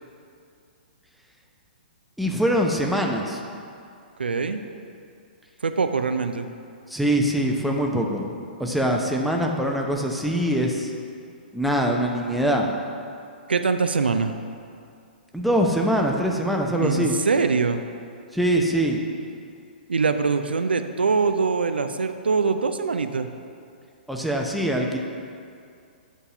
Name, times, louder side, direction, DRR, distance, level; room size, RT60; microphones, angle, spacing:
voice 1, 2.2-3.4 6.9-8.3 8.6-10.9 11.5-12.7 15.3-17.2 18.3-19.0 24.1-25.0, equal, ahead, 0 dB, 0.7 m, -23 dB
voice 2, 4.2-4.6 5.6-6.5 13.5-14.3 16.8-17.8 19.9-23.3, right 4 dB, 80° right, 8 dB, 0.4 m, -23 dB
8.1 x 4.1 x 5.7 m, 2.4 s
figure-of-eight pair, 120°, 5 cm